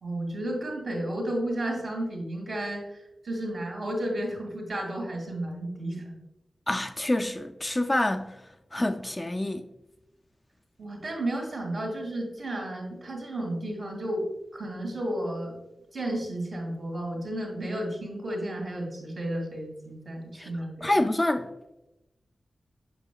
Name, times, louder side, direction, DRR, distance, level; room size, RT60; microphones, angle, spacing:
voice 1, 0.0-6.0 10.8-14.2 14.5-15.6 15.9-20.9, right 1 dB, 55° right, 2.4 m, -32 dB
voice 2, 6.7-8.4 8.7-9.7 20.3-20.5 20.8-21.5, left 1 dB, 15° left, 0.3 m, -27 dB
7.9 x 6.2 x 2.3 m
wide cardioid pair, 130°, 0 cm